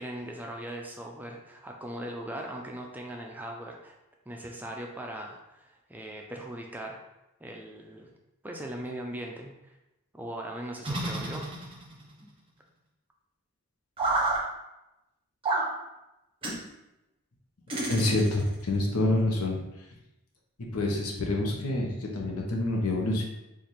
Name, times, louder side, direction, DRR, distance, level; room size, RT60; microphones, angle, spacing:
voice 1, 0.0-4.0 4.3-7.0 7.4-8.1 8.4-9.8 10.1-11.5 12.2-12.3, right 1 dB, 10° right, 1 dB, 0.3 m, -39 dB
sound 1, 10.8-12.0 14.0-14.4 15.4-15.7 16.4-16.6 17.7-18.6, right 2 dB, 25° right, 0.7 m, -29 dB
voice 2, 17.9-19.6 20.6-23.2, left 2 dB, 80° left, 0 dB, 0.8 m, -27 dB
3.2 x 2.4 x 4.1 m, 0.94 s
head